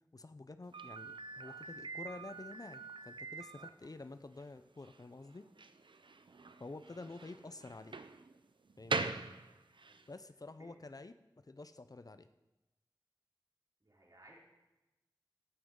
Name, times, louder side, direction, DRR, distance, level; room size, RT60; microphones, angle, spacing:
voice 1, 0.1-5.4 6.6-8.0 8.8-9.1 10.1-11.1 11.4-12.3, left 3 dB, 50° left, 11 dB, 0.5 m, -49 dB
Slam, 0.7-10.1, right 3 dB, 85° right, 0.5 m, -43 dB
voice 2, 6.3-7.0 9.8-10.0 10.6-10.7 13.8-14.4, right 1 dB, 50° right, -4 dB, 3.9 m, -63 dB
15.0 x 11.5 x 3.7 m, 1.0 s
wide cardioid pair, 50°, 8 cm